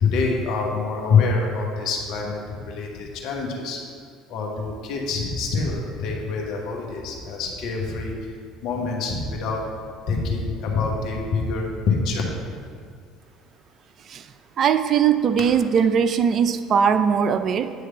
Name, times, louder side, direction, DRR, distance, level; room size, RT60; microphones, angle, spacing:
voice 1, 0.0-3.8 4.3-8.1 8.6-9.7 10.1-12.2, left 4 dB, 60° left, 0 dB, 1.3 m, -25 dB
voice 2, 14.6-17.7, right 7 dB, 45° right, 11 dB, 0.4 m, -20 dB
9.3 x 3.3 x 5.7 m, 2.2 s
hypercardioid pair, 65°, 0 cm